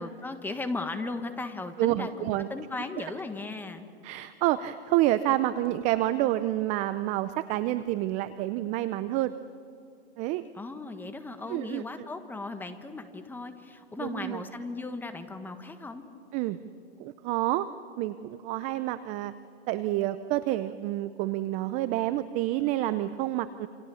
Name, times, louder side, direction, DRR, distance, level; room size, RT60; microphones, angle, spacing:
voice 1, 0.0-3.8 10.5-16.0, left 3 dB, 5° left, 8 dB, 1.4 m, -37 dB
voice 2, 1.8-2.5 4.0-9.3 10.2-10.4 11.5-11.8 14.0-14.4 16.3-16.6 17.0-17.7 18.0-19.3 19.7-23.7, right 15 dB, 20° right, 13 dB, 0.5 m, -28 dB
28.0 x 26.5 x 7.1 m, 2.6 s
hypercardioid pair, 140°, 33 cm